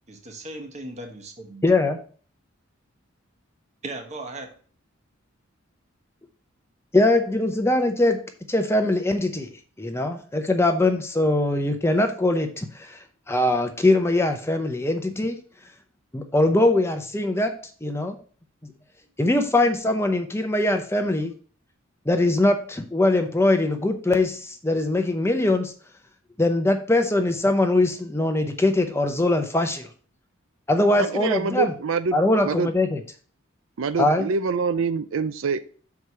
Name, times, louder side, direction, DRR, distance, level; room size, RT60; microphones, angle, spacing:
voice 1, 0.1-1.7 3.8-4.6, right 2 dB, 35° right, 4 dB, 1.3 m, -37 dB
voice 2, 1.6-2.0 6.9-8.2 8.5-9.5 9.8-13.0 13.3-15.4 16.1-17.5 17.8-18.2 19.2-21.3 22.1-25.7 26.4-29.9 30.7-31.7 32.1-33.0 34.0-34.3, left 2 dB, 10° left, 6 dB, 0.7 m, -22 dB
voice 3, 31.0-32.2 32.4-32.7 33.8-35.6, right 5 dB, 70° right, 12 dB, 0.5 m, -25 dB
6.6 x 4.7 x 5.5 m, 0.43 s
head